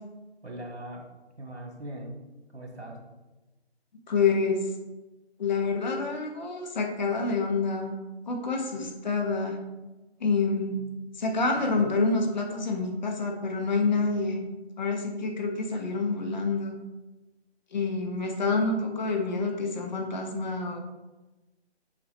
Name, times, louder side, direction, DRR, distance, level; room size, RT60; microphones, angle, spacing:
voice 1, 0.4-1.1 1.4-2.2 2.5-3.0 10.7-10.8 11.6-12.0, right 1 dB, 70° right, 0 dB, 2.1 m, -40 dB
voice 2, 4.1-4.7 5.4-7.9 8.3-9.6 10.2-10.8 11.2-14.4 14.8-16.7 17.7-20.8, left 4 dB, 40° left, 2 dB, 1.1 m, -27 dB
7.5 x 4.5 x 3.2 m, 1.1 s
figure-of-eight pair, 150°, 33 cm